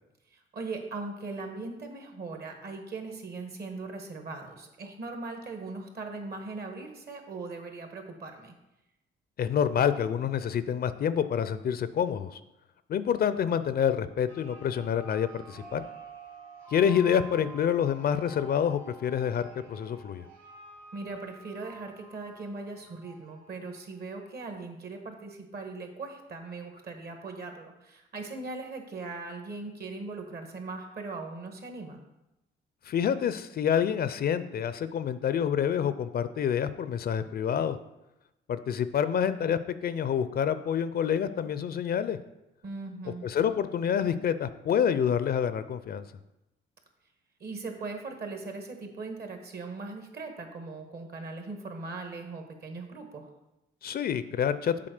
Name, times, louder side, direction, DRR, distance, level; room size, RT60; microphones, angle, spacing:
voice 1, 0.3-8.5 20.9-32.0 42.6-43.2 47.4-53.3, right 3 dB, 55° right, 4 dB, 1.5 m, -39 dB
voice 2, 9.4-12.4 12.9-15.8 16.7-20.2 32.9-37.8 38.5-42.2 43.2-46.0 53.8-54.8, left 8 dB, 50° left, 13 dB, 0.5 m, -27 dB
sound 1, 14.3-24.0, right 2 dB, 85° right, 3.0 m, -49 dB
7.7 x 3.8 x 6.5 m, 0.93 s
cardioid pair, 90°, 20 cm